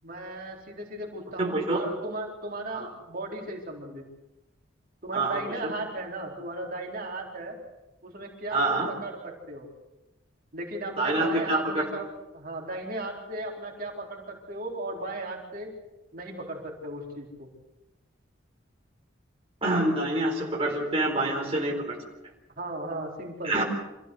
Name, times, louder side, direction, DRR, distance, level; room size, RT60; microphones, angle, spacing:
voice 1, 0.0-4.1 5.0-7.6 8.0-9.7 10.5-15.8 16.1-17.5 22.6-23.6, right 2 dB, 50° right, 0 dB, 4.4 m, -36 dB
voice 2, 1.4-1.8 2.7-2.9 5.1-5.7 8.5-8.9 11.0-11.8 19.6-22.0 23.4-23.6, right 2 dB, 30° right, -2 dB, 4.2 m, -26 dB
26.5 x 16.0 x 8.1 m, 0.99 s
head